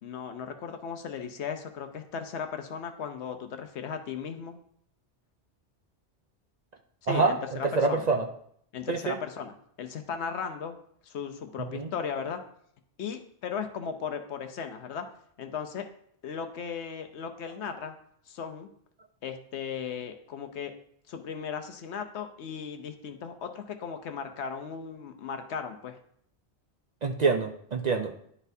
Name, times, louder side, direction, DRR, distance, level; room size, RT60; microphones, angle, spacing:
voice 1, 0.0-4.6 7.1-8.1 8.7-10.8 11.0-12.4 13.0-15.1 15.4-15.8 16.2-17.9 18.3-18.7 19.2-20.7 21.1-26.0, left 6 dB, 75° left, 7 dB, 1.0 m, -36 dB
voice 2, 7.6-8.3 8.9-9.2 11.7-11.9 27.0-28.1, right 4 dB, 50° right, 3 dB, 0.5 m, -26 dB
11.0 x 4.2 x 2.7 m, 0.67 s
omnidirectional pair, 1.1 m